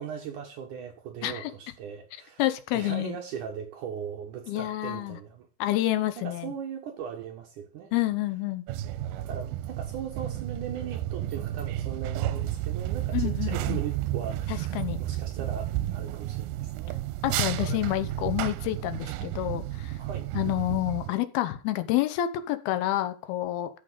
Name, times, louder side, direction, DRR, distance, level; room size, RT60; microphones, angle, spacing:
voice 1, 0.0-2.4 2.7-5.5 6.2-7.9 9.2-17.1 20.0-20.3, right 7 dB, 65° right, 2.3 m, -39 dB
voice 2, 2.4-3.2 4.5-5.2 5.6-6.5 7.9-8.7 13.1-13.8 14.5-15.0 17.2-19.9 20.4-23.7, left 14 dB, 85° left, 2.9 m, -28 dB
sound 1, 8.7-21.1, right 14 dB, 90° right, 2.6 m, -32 dB
14.0 x 5.2 x 5.2 m
omnidirectional pair, 4.3 m